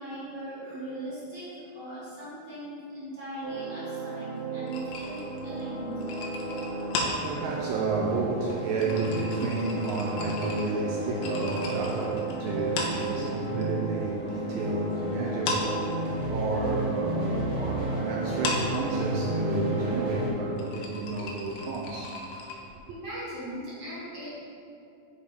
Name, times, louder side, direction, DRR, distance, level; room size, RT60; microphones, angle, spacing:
voice 1, 0.0-6.0 22.9-24.3, equal, 50° right, -10 dB, 1.2 m, -39 dB
sound 1, 3.4-20.3, right 2 dB, 70° right, 3.2 m, -32 dB
sound 2, 4.7-13.7 14.0-15.0 15.3-22.6, left 3 dB, 75° left, 2.1 m, -36 dB
voice 2, 6.3-22.7, right 3 dB, 85° right, -1 dB, 2.0 m, -32 dB
6.9 x 4.5 x 4.9 m, 2.7 s
omnidirectional pair, 4.6 m